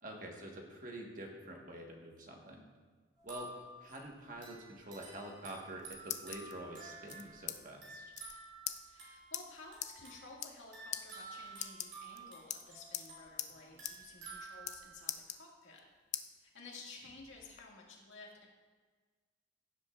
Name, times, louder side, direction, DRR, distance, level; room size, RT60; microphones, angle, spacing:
voice 1, 0.0-2.7 3.2-3.5 3.8-8.1, right 1 dB, 40° right, 0 dB, 1.4 m, -47 dB
sound 1, 3.2-15.1, right 3 dB, 65° right, 2.9 m, -52 dB
sound 2, 5.6-6.5 7.1-7.6 7.9-8.0 8.1-8.3 8.7-8.8 9.3-9.4 9.8-9.9 10.3-10.6 10.9-11.0 11.5-12.2 12.5-13.1 13.4-13.5 13.8-14.0 14.2-14.8 15.1-15.8 16.1-16.3 16.8-17.6, left 11 dB, 35° left, 0.4 m, -41 dB
voice 2, 8.8-15.8 16.4-18.5, left 3 dB, 80° left, -2 dB, 2.0 m, -54 dB
16.0 x 7.6 x 2.4 m, 1.4 s
head